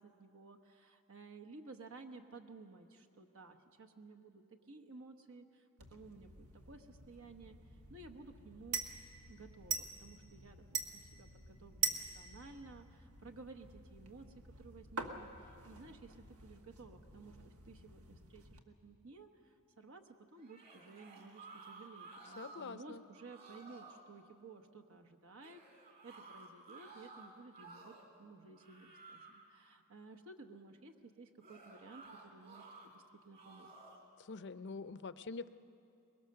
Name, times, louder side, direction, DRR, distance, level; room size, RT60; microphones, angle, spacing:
voice 1, 0.0-7.6 7.9-8.8 9.3-14.3 14.6-25.6 26.0-27.9 28.2-33.7, right 3 dB, 70° right, 6 dB, 1.1 m, -55 dB
sound 1, 5.8-18.6, right 5 dB, 90° right, 1.5 m, -45 dB
sound 2, 20.4-22.8 23.1-24.0 25.4-28.1 28.5-29.5 31.4-32.9 33.3-34.1, right 3 dB, 45° right, 3.2 m, -55 dB
voice 2, 22.3-23.0 34.2-35.5, left 4 dB, 55° left, 13 dB, 0.6 m, -45 dB
23.0 x 21.5 x 6.7 m, 2.6 s
head